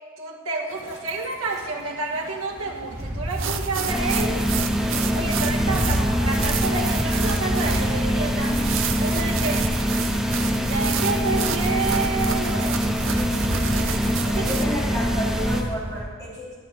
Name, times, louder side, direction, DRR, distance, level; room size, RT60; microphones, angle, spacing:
voice 1, 0.2-4.5 5.1-8.7 9.0-9.6 10.5-13.0 14.0-14.5, right 3 dB, 75° right, -1 dB, 1.6 m, -29 dB
sound 1, 0.7-16.0, equal, 15° right, 3.0 m, -32 dB
sound 2, 3.3-14.6, right 10 dB, 60° right, 0.5 m, -32 dB
sound 3, 3.9-15.6, equal, ahead, 0.6 m, -24 dB
voice 2, 13.1-13.9 14.3-16.5, equal, 15° left, -7 dB, 3.0 m, -33 dB
13.5 x 7.1 x 4.4 m, 1.5 s
head